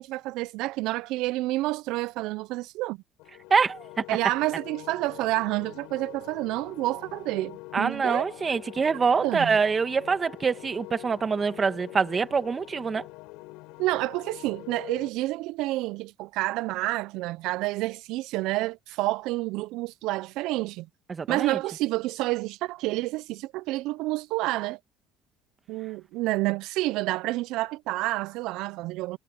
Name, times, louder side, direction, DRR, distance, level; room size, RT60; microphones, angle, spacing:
voice 1, 0.0-3.0 4.1-8.3 9.2-9.5 13.8-20.9 21.3-24.8 25.7-29.2, right 19 dB, 70° right, 0.4 m, -29 dB
sound 1, 3.2-15.1, left 23 dB, 80° left, 6.4 m, -45 dB
voice 2, 3.5-4.0 7.7-13.1 21.1-21.6, right 5 dB, 25° right, 1.8 m, -25 dB
cardioid pair, 135°, 0 cm